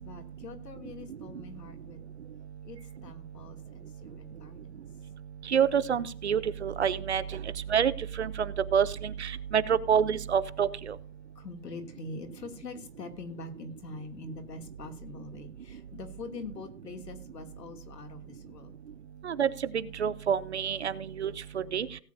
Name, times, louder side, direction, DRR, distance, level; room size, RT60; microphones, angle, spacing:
voice 1, 0.0-2.1 2.6-4.7 11.4-18.7, left 3 dB, 85° left, 6 dB, 2.6 m, -44 dB
voice 2, 5.5-7.2 7.7-7.9 8.2-8.3 8.7-8.9 9.2-10.7 19.2-19.5 20.0-20.9 21.2-21.3 21.7-21.9, right 8 dB, 45° right, 15 dB, 0.6 m, -26 dB
18.0 x 8.5 x 2.6 m, 0.44 s
hypercardioid pair, 170°, 48 cm